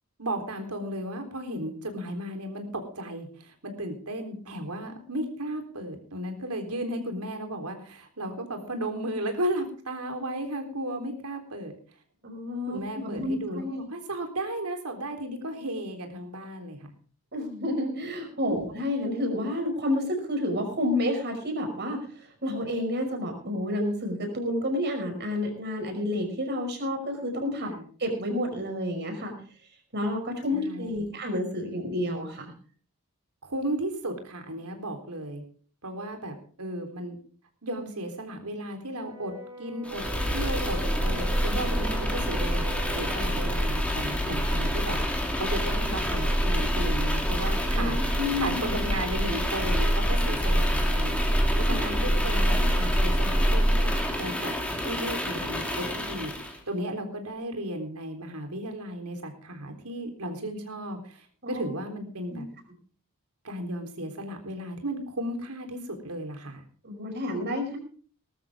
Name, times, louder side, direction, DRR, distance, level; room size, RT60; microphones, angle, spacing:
voice 1, 0.2-11.7 12.7-16.9 18.4-18.6 27.6-27.9 30.5-31.1 33.4-35.4 35.8-37.2 37.6-39.3 39.6-40.0 40.3-45.0 45.4-53.9 54.2-54.5 54.8-62.5 63.4-66.6, right 1 dB, 85° right, 5 dB, 3.7 m, -35 dB
voice 2, 12.2-13.8 17.3-22.1 22.4-27.7 28.0-29.3 29.9-32.5 47.7-48.6 51.7-51.8 61.4-61.6 62.3-62.4 66.8-67.8, left 1 dB, 50° right, 4 dB, 5.4 m, -30 dB
Brass instrument, 39.0-43.3, right 5 dB, 20° right, 5.4 m, -42 dB
sound 1, 39.9-56.6, equal, 5° left, 2.9 m, -26 dB
19.5 x 13.0 x 3.6 m, 0.43 s
head